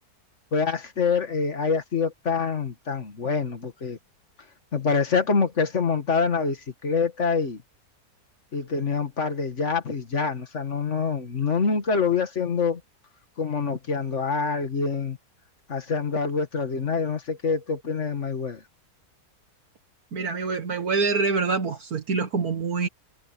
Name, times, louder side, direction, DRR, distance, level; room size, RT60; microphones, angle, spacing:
voice 1, 0.5-4.0 4.7-7.6 8.5-12.8 13.4-15.2 15.7-18.6, left 5 dB, 45° left, 2.1 m, -26 dB
voice 2, 20.1-22.9, right 4 dB, 65° right, 2.0 m, -25 dB
omnidirectional pair, 1.7 m